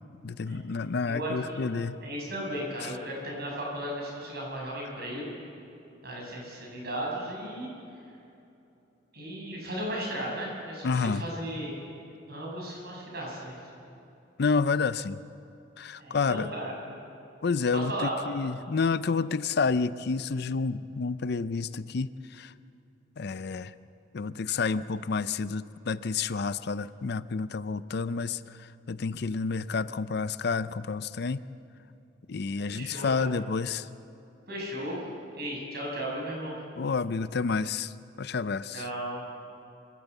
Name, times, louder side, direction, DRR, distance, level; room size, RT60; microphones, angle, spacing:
voice 1, 0.2-2.0 10.8-11.2 14.4-15.2 15.8-16.5 17.4-22.5 23.2-23.7 24.1-28.4 28.9-31.4 32.3-33.9 36.8-37.9 38.2-38.8, left 4 dB, 60° left, 15 dB, 0.5 m, -29 dB
voice 2, 1.1-1.6 2.0-5.4 6.0-7.7 9.1-11.9 12.3-13.6 13.9-14.0 16.0-16.7 17.7-18.1 32.6-33.3 34.5-35.0 35.3-36.6 38.7-39.2, right 1 dB, 55° right, -2 dB, 7.0 m, -35 dB
26.5 x 12.5 x 8.2 m, 2.8 s
head